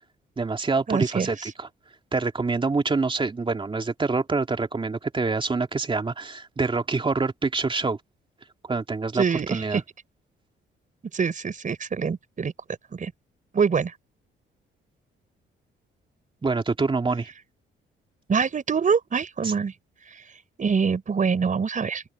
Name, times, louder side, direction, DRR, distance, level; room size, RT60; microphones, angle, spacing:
voice 1, 0.4-1.7 2.1-8.0 8.6-9.2 9.5-9.8 16.4-17.3 19.4-19.5, right 4 dB, 25° right, 2.6 m, -26 dB
voice 2, 0.9-1.5 9.1-9.8 11.1-12.5 12.9-13.1 13.5-13.9 18.3-19.7 20.1-20.2 20.6-22.0, right 6 dB, 40° right, 5.5 m, -25 dB
open air
cardioid pair, 90°, 20 cm